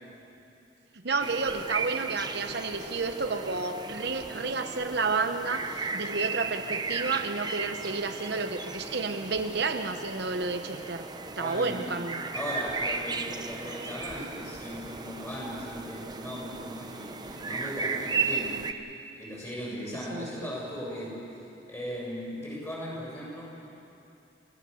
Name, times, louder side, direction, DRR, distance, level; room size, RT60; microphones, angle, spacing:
voice 1, 1.0-11.0 11.4-12.2 20.1-20.3, right 4 dB, 60° right, 6 dB, 0.9 m, -31 dB
sound 1, 1.2-18.7, right 4 dB, 20° right, 0.8 m, -35 dB
voice 2, 11.1-11.9 12.3-18.7 19.2-21.3 21.7-23.7, equal, 15° left, -5 dB, 7.7 m, -38 dB
29.5 x 16.0 x 7.1 m, 2.8 s
head